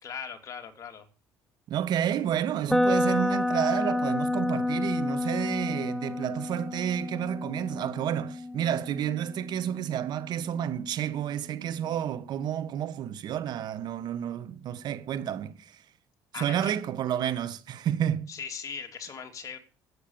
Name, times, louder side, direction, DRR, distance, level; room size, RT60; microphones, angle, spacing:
voice 1, 0.0-1.1 16.3-16.8 18.3-19.6, left 7 dB, 45° left, 3.0 m, -39 dB
voice 2, 1.7-15.8 16.3-18.3, right 10 dB, 60° right, 1.5 m, -30 dB
sound 1, 2.7-10.6, left 1 dB, 5° left, 1.0 m, -30 dB
12.5 x 8.8 x 9.0 m
cardioid pair, 95°, 8 cm